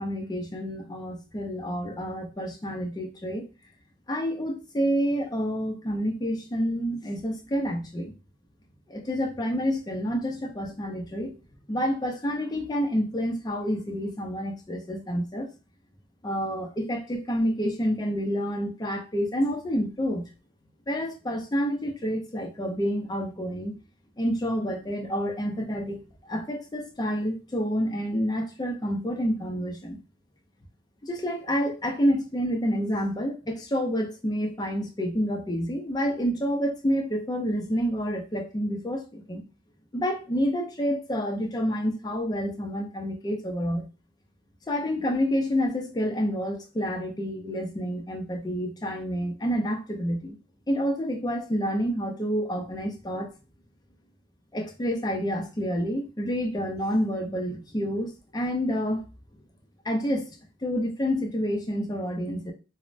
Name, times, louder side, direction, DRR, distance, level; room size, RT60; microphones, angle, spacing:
voice 1, 0.0-3.4 4.1-8.1 8.9-11.3 11.7-15.5 16.2-20.3 20.9-23.7 24.2-26.0 26.3-30.0 31.0-39.4 39.9-43.9 44.7-50.4 50.7-53.3 54.5-59.0 59.8-60.4 60.6-62.5, equal, 20° left, 2 dB, 0.5 m, -28 dB
3.1 x 2.0 x 2.5 m, 0.32 s
head